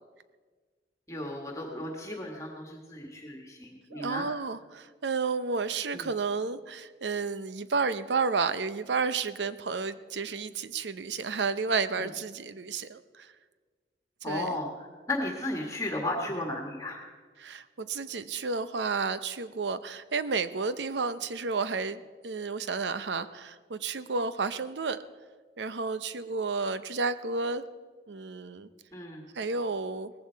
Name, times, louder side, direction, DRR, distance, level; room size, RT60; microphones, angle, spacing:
voice 1, 1.1-4.3 5.9-6.1 12.0-12.1 14.2-17.0 28.9-29.3, left 1 dB, 20° left, 1 dB, 1.6 m, -35 dB
voice 2, 3.9-13.3 14.3-14.6 17.4-25.0 25.6-27.6 28.1-28.7 29.3-30.1, right 4 dB, 85° right, 13 dB, 0.7 m, -31 dB
18.0 x 15.0 x 4.6 m, 1.5 s
head